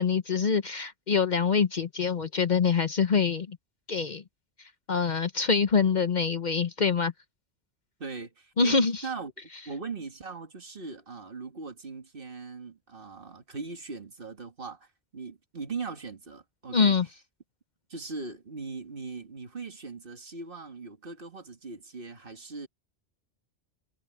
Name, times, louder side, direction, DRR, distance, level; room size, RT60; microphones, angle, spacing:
voice 1, 0.0-3.6 3.9-4.2 4.9-7.1 8.6-9.0 16.7-17.1, left 5 dB, 45° left, 0.9 m, -25 dB
voice 2, 8.0-17.0 17.9-22.7, right 4 dB, 55° right, 2.1 m, -40 dB
omnidirectional pair, 1.1 m